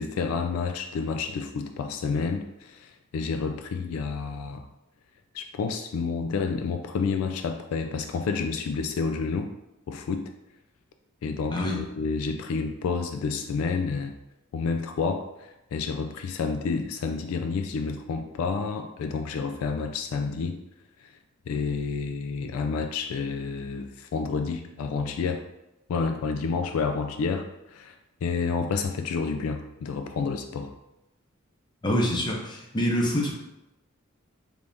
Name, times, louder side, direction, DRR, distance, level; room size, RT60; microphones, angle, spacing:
voice 1, 0.0-4.7 5.3-9.5 9.9-10.3 11.2-14.1 14.5-20.6 21.0-21.1 21.5-25.4 25.9-28.0 28.2-30.7, left 5 dB, 85° left, 10 dB, 0.3 m, -29 dB
voice 2, 31.8-33.3, left 1 dB, 20° left, -1 dB, 0.6 m, -25 dB
3.4 x 3.4 x 2.6 m, 0.93 s
head